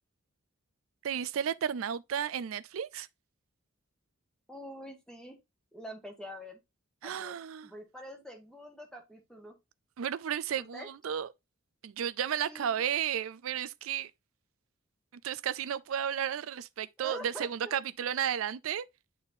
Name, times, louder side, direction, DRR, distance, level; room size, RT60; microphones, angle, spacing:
voice 1, 1.0-3.1 7.0-7.7 10.0-11.3 11.8-14.1 15.2-18.8, right 9 dB, 75° right, 0.4 m, -33 dB
voice 2, 4.5-5.4 5.7-6.6 7.0-7.4 7.6-9.5 10.6-10.9 12.3-12.8 17.0-17.8, equal, 5° left, 1.4 m, -46 dB
8.7 x 4.2 x 2.6 m
head